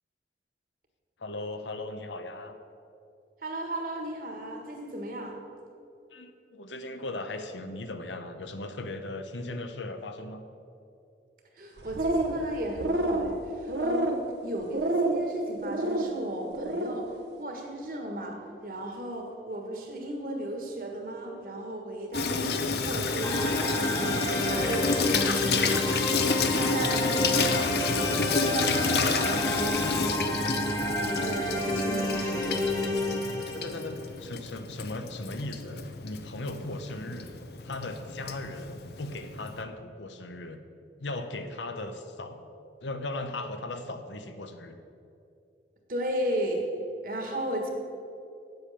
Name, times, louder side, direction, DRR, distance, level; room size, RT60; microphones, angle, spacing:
voice 1, 1.2-2.6 6.1-10.4 33.5-37.3 37.6-40.6 41.0-42.5 42.8-44.8, left 2 dB, 85° left, 8 dB, 0.9 m, -37 dB
voice 2, 3.4-5.4 11.5-17.1 17.4-26.1 26.5-30.4 31.0-33.1 45.9-46.7 47.0-47.7, right 1 dB, 50° right, 2 dB, 1.6 m, -35 dB
sound 1, 11.8-12.4 12.7-13.3 13.7-14.2 14.7-15.2 15.6-16.1 16.5-17.0, right 1 dB, 70° right, 0.9 m, -28 dB
Water tap faucet / Sink (filling or washing), 22.1-39.6, left 4 dB, 65° left, 0.7 m, -30 dB
sound 2, 23.2-34.0, left 1 dB, 20° left, 1.5 m, -30 dB
8.8 x 8.1 x 6.7 m, 2.6 s
head